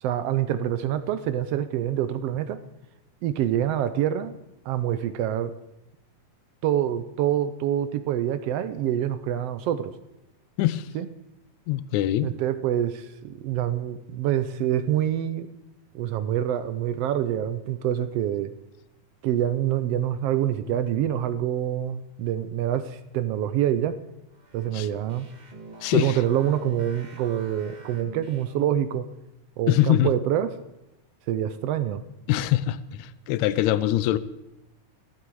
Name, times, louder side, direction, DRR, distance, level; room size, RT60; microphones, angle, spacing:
voice 1, 0.0-2.6 3.2-4.4 4.6-5.6 6.6-9.9 10.9-11.1 12.2-15.5 15.9-18.5 19.2-24.0 24.5-25.3 25.9-29.1 29.6-30.5 31.3-32.0, right 11 dB, 75° right, 12 dB, 1.5 m, -26 dB
voice 2, 10.6-10.9 11.7-12.3 24.7-24.9 25.8-26.2 29.7-30.1 32.3-34.2, left 13 dB, 80° left, 16 dB, 1.9 m, -23 dB
sound 1, 24.3-28.8, right 3 dB, 25° right, 1.0 m, -46 dB
15.5 x 12.5 x 4.7 m, 0.91 s
omnidirectional pair, 3.3 m